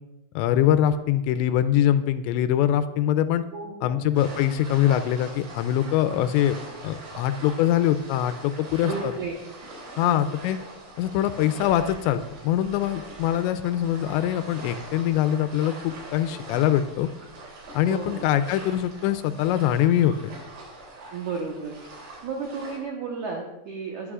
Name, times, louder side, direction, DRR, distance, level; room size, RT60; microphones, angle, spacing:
voice 1, 0.4-3.4 3.8-6.6 6.8-9.1 10.0-10.6 11.0-17.1 17.7-20.2, left 11 dB, 85° left, 10 dB, 2.7 m, -23 dB
voice 2, 3.5-4.0 8.8-9.3 10.0-10.3 17.9-18.2 21.1-21.8 22.2-24.1, right 5 dB, 85° right, 0 dB, 1.6 m, -33 dB
sound 1, 4.1-22.8, right 2 dB, 65° right, 5.1 m, -42 dB
21.0 x 9.6 x 2.4 m, 0.93 s
omnidirectional pair, 5.3 m